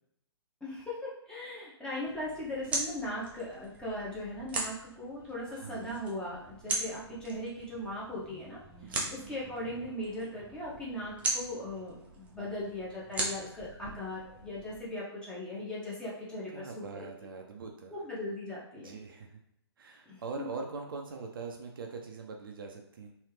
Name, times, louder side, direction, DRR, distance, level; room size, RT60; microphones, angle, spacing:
voice 1, 0.6-8.6 8.8-17.1 17.9-19.0 20.1-20.5, left 1 dB, 5° left, -7 dB, 0.9 m, -39 dB
sound 1, 2.0-14.8, right 3 dB, 10° right, 0.5 m, -40 dB
voice 2, 5.5-6.0 8.8-9.1 16.5-17.9 18.7-19.4 19.8-23.1, right 4 dB, 50° right, 2 dB, 0.6 m, -42 dB
3.3 x 2.7 x 3.1 m, 0.77 s
figure-of-eight pair, 125°, 14 cm